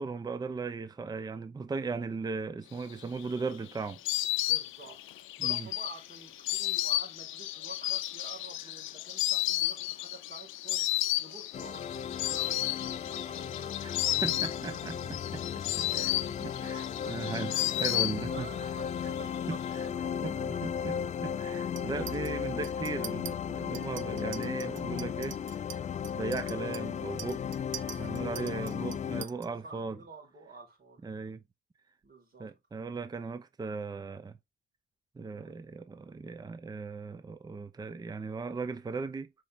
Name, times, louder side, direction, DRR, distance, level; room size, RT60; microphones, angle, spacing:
voice 1, 0.0-4.0 5.4-5.7 13.8-13.9 14.2-15.0 15.3-16.1 16.4-18.5 19.5-19.9 20.2-20.9 21.2-25.4 26.1-27.5 28.0-30.0 31.0-31.4 32.4-34.4 35.2-39.3, right 4 dB, 20° right, 0.6 m, -37 dB
Insect, 2.9-18.6 18.9-19.7, left 15 dB, 90° left, 0.6 m, -33 dB
voice 2, 4.4-13.9 16.6-18.0 18.3-21.2 28.0-31.1 32.0-32.5 35.2-35.6, right 3 dB, 50° right, 4.4 m, -50 dB
sound 1, 11.5-29.2, left 8 dB, 35° left, 0.4 m, -35 dB
Chink clink, 21.8-22.3 22.6-23.3 23.7-29.5, right 12 dB, 70° right, 0.6 m, -45 dB
6.4 x 4.7 x 3.5 m
cardioid pair, 90°, 20 cm